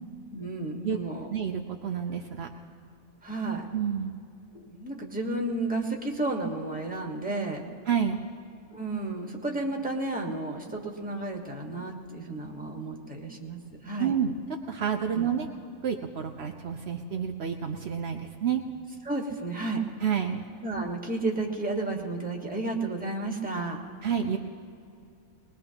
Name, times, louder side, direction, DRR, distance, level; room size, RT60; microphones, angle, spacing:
voice 1, 0.3-1.3 3.2-3.7 4.5-7.7 8.7-14.1 15.0-15.3 19.0-19.8 20.6-23.8, right 2 dB, 5° right, 0 dB, 1.4 m, -32 dB
voice 2, 1.3-2.5 3.7-4.1 7.9-8.2 14.0-15.5 15.8-18.6 20.0-20.4 24.0-24.4, right 7 dB, 80° right, 3 dB, 0.5 m, -29 dB
21.0 x 21.0 x 2.9 m, 2.5 s
omnidirectional pair, 2.0 m